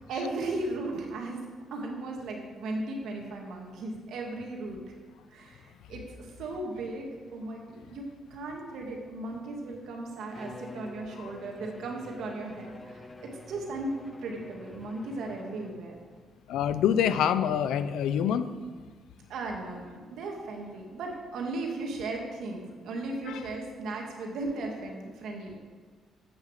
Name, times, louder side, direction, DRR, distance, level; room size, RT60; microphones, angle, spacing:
voice 1, 0.1-1.5 1.7-5.0 5.3-5.6 5.9-16.0 19.3-25.6, right 2 dB, 75° right, 1 dB, 1.9 m, -36 dB
Bowed string instrument, 10.3-16.0, left 2 dB, 20° left, 0.7 m, -47 dB
voice 2, 16.5-18.5 23.3-23.4, left 9 dB, 85° left, 13 dB, 0.5 m, -26 dB
8.6 x 6.7 x 6.5 m, 1.5 s
cardioid pair, 90°, 0 cm